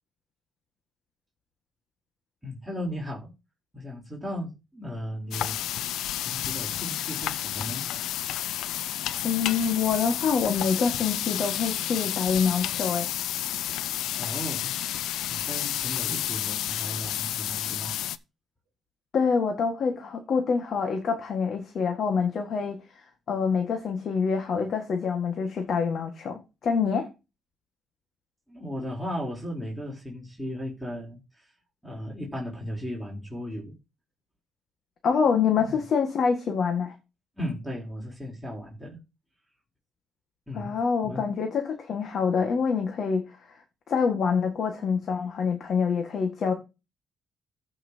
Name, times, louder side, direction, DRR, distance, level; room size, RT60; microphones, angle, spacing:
voice 1, 2.4-3.3 3.7-5.6 6.2-7.9 14.1-14.7 15.3-18.0 20.0-20.1 28.5-31.5 31.8-33.8 35.6-35.8 37.4-39.0 40.5-41.2, equal, 5° right, 3.7 m, -36 dB
sound 1, 5.3-18.2, left 12 dB, 85° left, 0.5 m, -31 dB
voice 2, 9.2-13.1 19.1-22.8 23.3-27.1 35.0-36.9 40.5-43.6 43.9-46.5, left 6 dB, 60° left, 1.7 m, -26 dB
14.5 x 5.9 x 2.8 m
cardioid pair, 90°, 0 cm